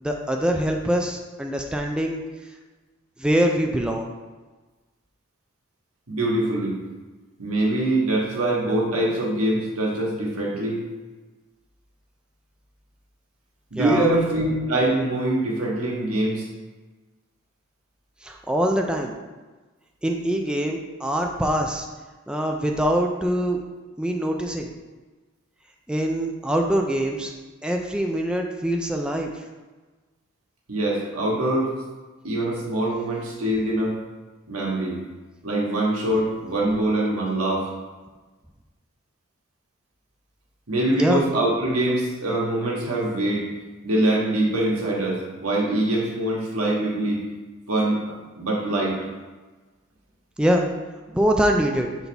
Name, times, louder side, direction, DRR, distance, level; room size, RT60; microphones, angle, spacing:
voice 1, 0.0-2.2 3.2-4.1 13.8-14.1 18.2-19.2 20.0-21.9 22.3-23.6 24.0-24.7 25.9-27.3 27.6-29.4 41.0-41.2 50.4-50.7 51.1-51.9, equal, 5° right, 1 dB, 0.3 m, -24 dB
voice 2, 6.1-6.8 7.4-10.8 13.7-16.5 30.7-31.7 32.2-34.0 34.5-35.0 35.4-37.7 40.7-43.4 43.8-47.2 47.7-49.0, right 1 dB, 85° right, -3 dB, 1.4 m, -23 dB
6.9 x 4.0 x 3.4 m, 1.3 s
head